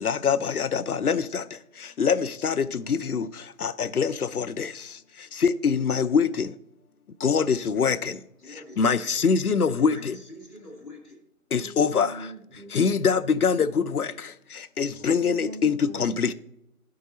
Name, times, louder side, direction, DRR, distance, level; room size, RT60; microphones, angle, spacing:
voice 1, 0.0-1.4 2.0-3.3 3.6-4.7 5.4-6.5 7.2-8.0 8.8-10.1 11.5-12.1 12.7-14.1 14.8-16.3, left 6 dB, 80° left, 0.6 m, -23 dB
voice 2, 8.4-9.3 9.8-11.3, left 1 dB, ahead, 0.7 m, -45 dB
voice 3, 11.5-12.8 13.3-13.8 15.2-16.3, right 1 dB, 60° right, 1.4 m, -43 dB
11.0 x 4.7 x 4.1 m
figure-of-eight pair, 170°, 44 cm